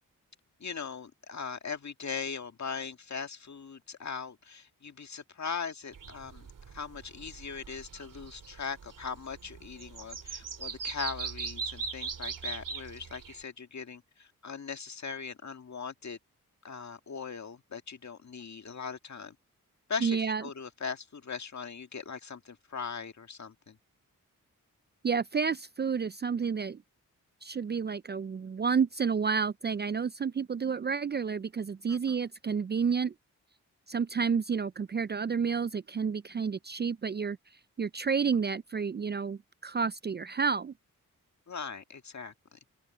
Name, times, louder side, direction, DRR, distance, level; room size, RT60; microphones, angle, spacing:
voice 1, 0.6-16.2 16.6-19.4 19.9-23.8 31.9-32.0 41.5-42.6, left 5 dB, 55° left, 2.0 m, -40 dB
sound 1, 5.9-13.4, right 5 dB, 65° right, 2.9 m, -40 dB
voice 2, 20.0-20.4 25.0-26.8 27.4-33.1 33.9-37.4 37.8-40.7, right 6 dB, 30° right, 0.4 m, -30 dB
open air
cardioid pair, 60°, 34 cm